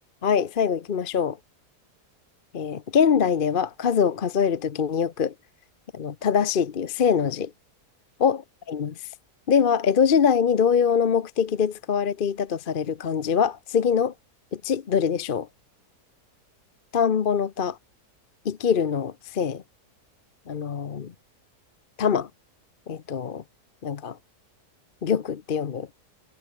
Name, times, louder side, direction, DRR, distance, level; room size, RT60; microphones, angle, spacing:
voice 1, 0.2-1.4 2.5-5.3 5.9-7.5 8.2-8.4 8.7-8.9 9.5-14.1 14.5-15.5 16.9-17.8 18.4-19.6 20.5-21.1 22.0-22.3 22.9-23.4 23.8-24.2 25.0-25.9, left 7 dB, 45° left, 0.8 m, -23 dB
omnidirectional pair, 1.7 m